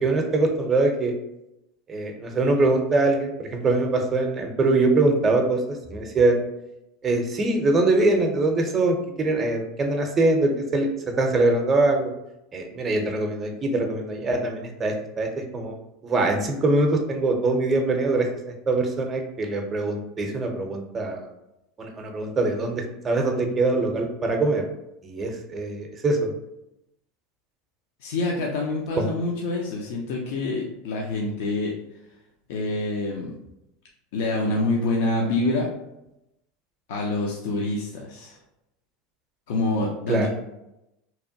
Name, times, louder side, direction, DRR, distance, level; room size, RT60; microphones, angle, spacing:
voice 1, 0.0-1.1 1.9-6.4 7.0-10.9 11.2-12.1 12.5-15.7 16.0-18.3 18.7-21.3 21.8-24.7 25.0-26.3 29.0-29.1 40.1-40.3, right 2 dB, 25° right, 3 dB, 0.5 m, -23 dB
voice 2, 28.0-31.8 32.5-33.3 34.1-35.7 36.9-38.4 39.5-40.3, left 2 dB, 75° left, -1 dB, 0.4 m, -26 dB
2.8 x 2.2 x 2.6 m, 0.88 s
hypercardioid pair, 95°, 0 cm